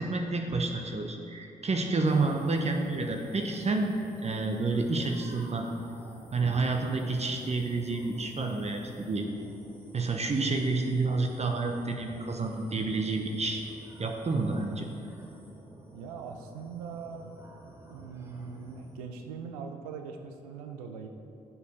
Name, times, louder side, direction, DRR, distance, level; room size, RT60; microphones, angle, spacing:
voice 1, 0.0-5.7 6.3-9.3 9.9-13.6 14.0-14.9, right 3 dB, 35° right, 3 dB, 0.9 m, -29 dB
sound 1, 2.0-19.0, right 1 dB, 15° right, 1.9 m, -51 dB
voice 2, 15.9-17.4 17.9-21.1, right 6 dB, 85° right, 6 dB, 0.5 m, -41 dB
7.3 x 6.7 x 5.0 m, 2.7 s
hypercardioid pair, 40°, 18 cm